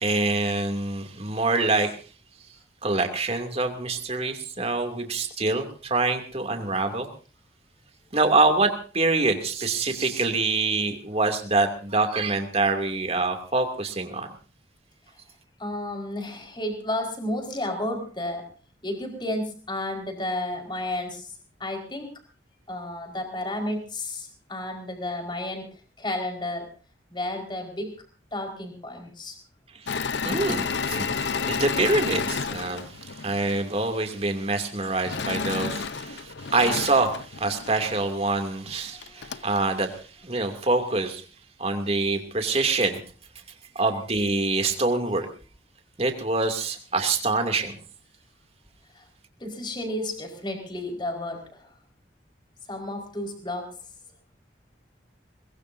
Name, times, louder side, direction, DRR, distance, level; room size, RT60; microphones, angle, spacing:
voice 1, 0.0-2.0 2.8-7.1 8.1-14.3 30.2-41.2 41.6-43.0 43.7-45.3 46.0-47.7, right 3 dB, 35° right, 5 dB, 2.7 m, -25 dB
voice 2, 15.6-18.5 18.8-21.3 21.6-22.1 22.7-25.7 26.0-26.7 27.1-27.9 28.3-29.4 38.9-39.4 48.9-49.0 49.4-51.7 52.7-53.8, left 1 dB, 25° left, 3 dB, 4.8 m, -32 dB
Engine / Mechanisms, 29.9-33.6 35.1-38.0 38.7-38.8 39.0-39.6, left 5 dB, 80° left, 0.8 m, -31 dB
22.5 x 21.5 x 2.7 m, 0.37 s
head